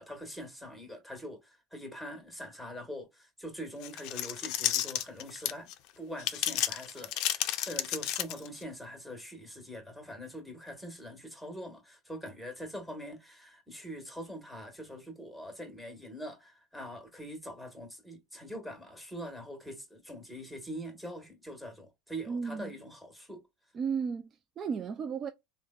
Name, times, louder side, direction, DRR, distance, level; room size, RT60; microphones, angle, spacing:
voice 1, 0.0-5.7 6.0-23.4, equal, 5° right, 1.3 m, -43 dB
sound 1, 3.8-5.7 6.2-8.6, left 13 dB, 60° left, 0.4 m, -32 dB
voice 2, 22.3-22.7 23.7-25.3, right 6 dB, 35° right, 0.4 m, -34 dB
3.1 x 2.1 x 2.3 m
supercardioid pair, 110°, 0 cm